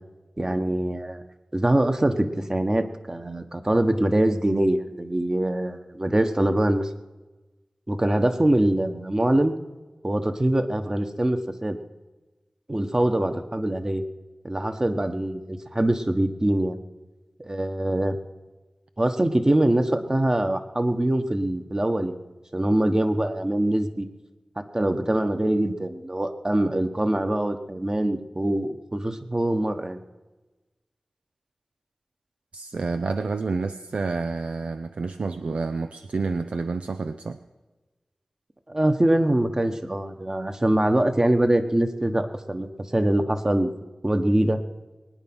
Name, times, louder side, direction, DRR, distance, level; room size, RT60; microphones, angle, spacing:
voice 1, 0.4-1.2 1.5-6.9 7.9-9.5 10.0-11.8 12.7-14.0 14.4-16.8 17.4-18.2 19.0-22.2 22.5-24.1 24.7-30.0 38.7-42.7 42.9-43.7 44.0-44.6, right 1 dB, 30° right, 7 dB, 1.4 m, -23 dB
voice 2, 32.5-37.4, right 4 dB, 85° right, 9 dB, 0.6 m, -29 dB
21.0 x 9.9 x 6.2 m, 1.2 s
wide cardioid pair, 50°, 2 cm